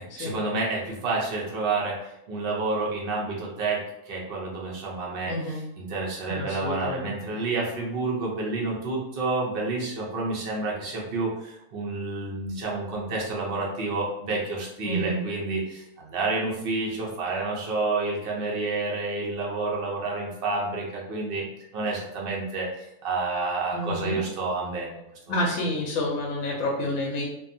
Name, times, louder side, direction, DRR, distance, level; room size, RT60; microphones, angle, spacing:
voice 1, 0.0-21.4 21.7-25.0 25.3-25.4, right 3 dB, 60° right, -3 dB, 0.6 m, -29 dB
voice 2, 5.2-5.6 6.2-7.1 14.8-15.2 23.7-24.2 25.3-27.2, left 1 dB, 65° left, -2 dB, 0.8 m, -29 dB
2.6 x 2.2 x 2.6 m, 0.83 s
omnidirectional pair, 1.7 m